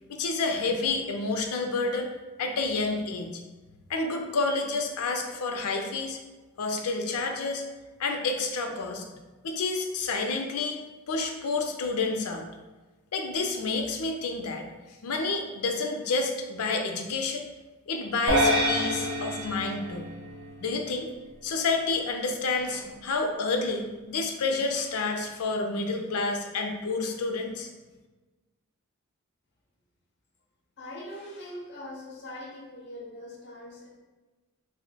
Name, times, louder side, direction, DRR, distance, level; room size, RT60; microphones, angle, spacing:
voice 1, 0.1-2.1 2.4-3.4 3.9-6.2 6.6-7.6 8.0-9.0 9.4-12.4 13.1-14.7 15.0-17.5 17.9-20.1 20.6-21.1 21.4-27.7, left 3 dB, 85° left, 4 dB, 0.5 m, -29 dB
sound 1, 18.3-20.8, equal, 55° right, 0.6 m, -27 dB
voice 2, 30.8-34.0, left 1 dB, 50° left, -3 dB, 0.7 m, -42 dB
2.9 x 2.0 x 3.9 m, 1.2 s
head